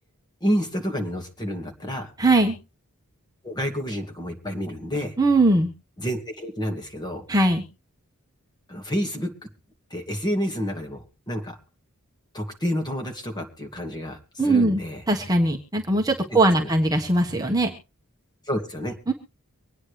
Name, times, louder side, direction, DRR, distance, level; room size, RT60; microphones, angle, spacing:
voice 1, 0.4-2.1 3.4-5.1 6.0-7.2 8.7-9.3 9.9-11.6 12.3-15.0 16.3-16.7 18.5-19.0, equal, 20° left, 3 dB, 2.4 m, -29 dB
voice 2, 2.2-2.6 5.2-5.7 7.3-7.6 14.4-14.8 15.1-17.7 19.1-19.2, right 2 dB, 15° right, 2 dB, 1.3 m, -20 dB
24.5 x 9.5 x 3.3 m, 0.32 s
head